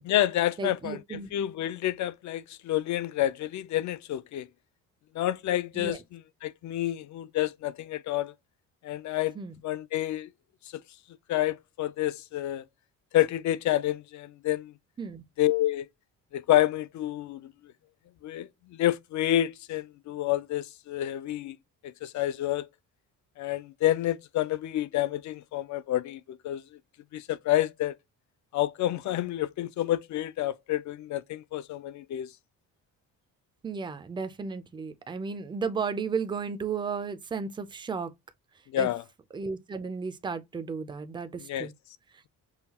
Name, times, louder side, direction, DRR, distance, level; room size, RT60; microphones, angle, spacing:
voice 1, 0.1-4.5 5.1-8.3 8.8-9.3 9.6-10.3 11.3-12.6 13.1-14.7 15.4-15.9 16.3-17.4 18.2-21.5 21.8-22.7 23.4-26.6 27.1-28.0 28.5-32.3 38.7-39.0 41.5-41.7, left 13 dB, 60° left, 0.4 m, -29 dB
voice 2, 0.6-1.3 5.7-6.0 9.3-9.6 15.0-15.2 33.6-38.1 38.8-38.9 39.3-41.7, right 5 dB, 15° right, 0.4 m, -34 dB
5.6 x 2.2 x 2.8 m
cardioid pair, 180°, 33 cm